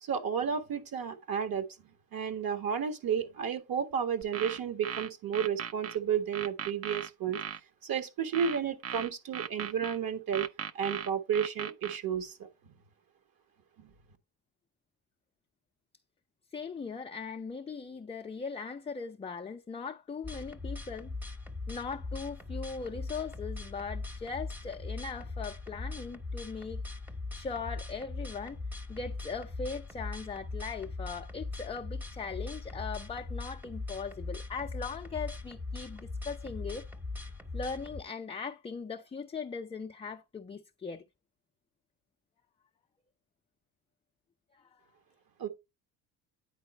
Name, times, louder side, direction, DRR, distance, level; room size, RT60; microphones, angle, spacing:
voice 1, 0.0-1.7 2.1-7.4 7.8-10.5 10.7-12.8 13.8-13.9 45.4-45.5, right 7 dB, 55° right, 1.6 m, -32 dB
sound 1, 4.2-6.0 6.3-7.6 8.3-10.0 10.3-12.0, right 8 dB, 35° right, 0.6 m, -38 dB
voice 2, 16.5-21.1 21.7-26.8 27.3-28.6 28.9-36.9 37.5-41.0 44.5-44.8, left 5 dB, 15° left, 0.4 m, -39 dB
sound 2, 20.2-38.0, left 3 dB, 5° right, 0.8 m, -40 dB
9.7 x 4.1 x 4.3 m
cardioid pair, 100°, 43 cm